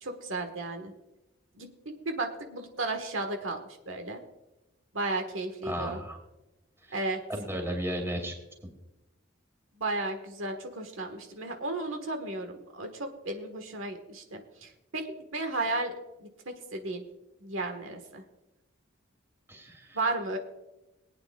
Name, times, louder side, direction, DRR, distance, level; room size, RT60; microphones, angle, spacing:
voice 1, 0.0-0.9 1.6-3.6 3.9-4.2 4.9-6.0 6.9-7.2 9.8-15.0 15.3-15.9 16.2-17.0 17.4-18.2 19.9-20.4, right 2 dB, 85° right, 5 dB, 1.5 m, -34 dB
voice 2, 5.6-6.2 7.3-8.3 19.5-20.0, equal, 15° right, 2 dB, 2.5 m, -34 dB
22.5 x 9.0 x 2.3 m, 0.97 s
head